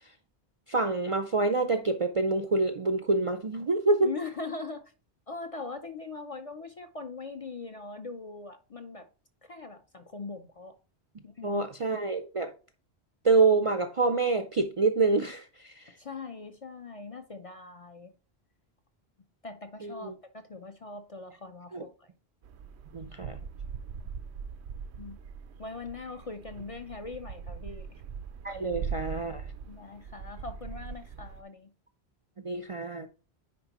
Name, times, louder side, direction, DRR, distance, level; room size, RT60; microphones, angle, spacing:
voice 1, 0.7-4.1 11.4-12.5 13.2-15.9 19.8-20.1 21.7-21.8 22.9-23.4 28.4-29.4 32.4-33.1, right 3 dB, 45° right, 0.4 m, -27 dB
voice 2, 4.0-4.8 5.3-9.1 9.4-10.7 11.2-11.6 16.0-18.1 19.4-22.1 25.0-25.2 25.6-28.0 29.7-31.7, left 4 dB, 40° left, 0.6 m, -41 dB
sound 1, 22.4-31.4, right 6 dB, 90° right, 0.9 m, -41 dB
9.6 x 4.4 x 2.9 m
omnidirectional pair, 1.1 m